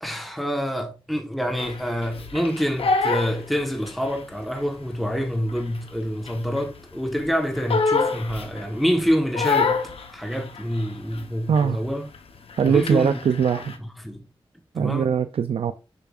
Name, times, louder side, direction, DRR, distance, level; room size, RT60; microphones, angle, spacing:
voice 1, 0.0-9.8 10.1-12.0 12.6-13.2 13.8-14.2 14.7-15.1, equal, ahead, 1.2 m, -26 dB
Crying sobbing, 1.6-4.2 4.6-6.8 7.1-8.9 9.3-11.3 11.5-11.9 12.1-13.8, left 4 dB, 80° left, 1.0 m, -27 dB
voice 2, 11.5-11.8 12.6-13.7 14.7-15.7, right 7 dB, 80° right, 0.4 m, -21 dB
6.9 x 5.8 x 2.4 m
wide cardioid pair, 75°, 10 cm